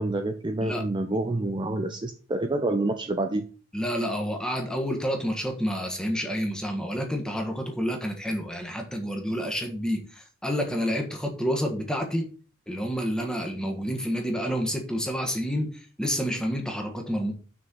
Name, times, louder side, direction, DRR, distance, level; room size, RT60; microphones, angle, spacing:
voice 1, 0.0-3.4, right 2 dB, 25° right, 6 dB, 0.5 m, -27 dB
voice 2, 3.7-12.3 12.7-17.3, equal, 5° left, 2 dB, 1.4 m, -29 dB
6.2 x 4.4 x 6.3 m, 0.39 s
head